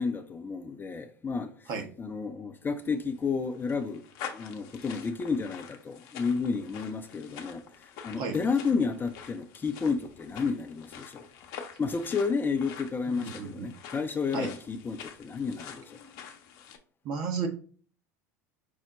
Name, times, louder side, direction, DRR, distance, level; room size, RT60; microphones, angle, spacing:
voice 1, 0.0-1.7 2.0-4.1 4.3-11.3 11.8-16.0, left 5 dB, 20° left, 0.5 m, -31 dB
sound 1, 2.9-16.8, left 8 dB, 60° left, 0.7 m, -46 dB
voice 2, 13.2-13.7 14.3-14.5 17.0-17.5, right 5 dB, 50° right, 1.0 m, -33 dB
5.4 x 2.1 x 3.8 m
hypercardioid pair, 80°, 9 cm